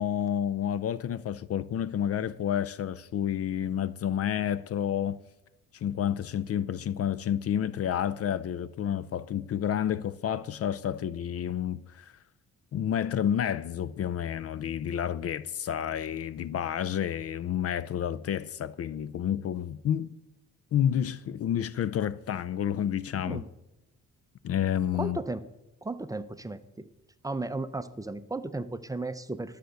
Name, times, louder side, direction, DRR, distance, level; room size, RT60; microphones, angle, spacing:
voice 1, 0.0-5.2 5.7-12.1 12.7-20.1 20.7-23.4 24.4-25.2, left 9 dB, 50° left, 0.5 m, -30 dB
voice 2, 24.9-25.4 25.8-26.9 27.2-29.6, right 2 dB, 10° right, 0.6 m, -35 dB
12.5 x 6.7 x 8.0 m
cardioid pair, 90°, 30 cm